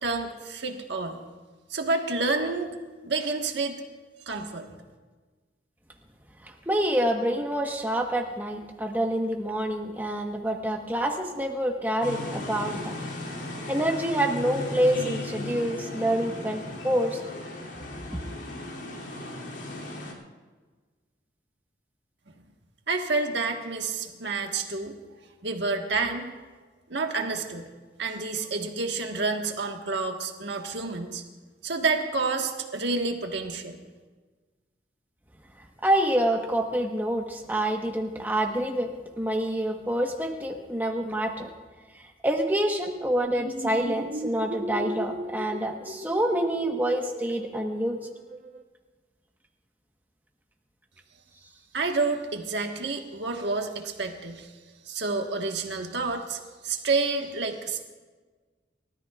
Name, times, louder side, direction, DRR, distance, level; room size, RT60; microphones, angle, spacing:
voice 1, 0.0-1.2 1.7-3.8 4.3-4.7 22.9-24.9 25.4-26.3 26.9-27.7 28.0-31.2 31.6-33.8 51.7-54.5 54.8-57.8, right 3 dB, 70° right, 3 dB, 1.5 m, -29 dB
voice 2, 6.4-12.9 13.7-17.2 35.8-38.9 39.2-41.5 42.2-48.0, right 1 dB, 10° right, 2 dB, 1.3 m, -27 dB
sound 1, 12.0-20.1, left 1 dB, 75° left, 2.9 m, -36 dB
sound 2, 43.2-48.6, right 1 dB, 45° right, 1.1 m, -37 dB
29.5 x 13.5 x 2.5 m, 1.4 s
head